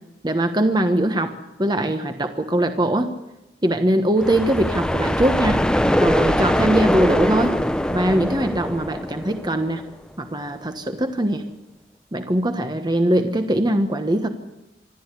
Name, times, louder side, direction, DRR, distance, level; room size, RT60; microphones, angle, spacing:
voice 1, 0.2-3.1 3.6-5.6 6.0-7.6 7.9-9.8 10.2-11.4 12.1-14.3, right 1 dB, 25° right, 7 dB, 1.2 m, -21 dB
sound 1, 4.2-9.9, equal, 5° left, 0.6 m, -22 dB
26.0 x 13.0 x 8.3 m, 0.93 s
head